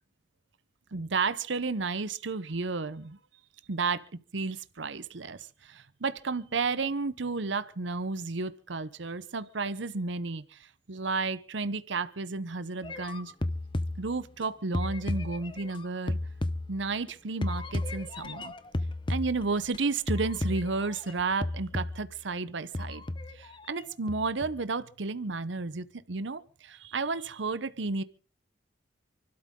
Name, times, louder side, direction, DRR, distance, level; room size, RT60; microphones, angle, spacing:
voice 1, 0.9-3.2 3.7-13.3 14.0-16.2 16.7-18.5 19.1-23.0 23.3-28.0, right 4 dB, 80° right, 0.8 m, -32 dB
sound 1, 12.8-14.4 14.7-17.1 17.4-19.8 20.1-21.1 21.4-22.2 22.7-23.8 24.1-24.6, left 1 dB, 25° left, 0.8 m, -34 dB
28.5 x 12.5 x 3.7 m
head